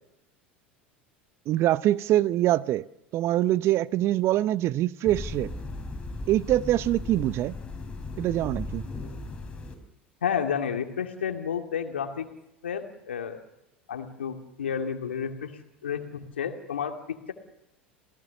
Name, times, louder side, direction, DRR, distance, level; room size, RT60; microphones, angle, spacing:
voice 1, 1.5-2.9 3.1-5.5 6.3-7.5 8.2-8.8, right 14 dB, 45° right, 0.7 m, -24 dB
sound 1, 5.0-9.7, left 2 dB, 15° left, 5.2 m, -37 dB
voice 2, 10.2-12.3 12.6-13.4 13.9-17.3, left 7 dB, 80° left, 2.3 m, -31 dB
28.5 x 17.5 x 7.0 m
figure-of-eight pair, 80°, 6 cm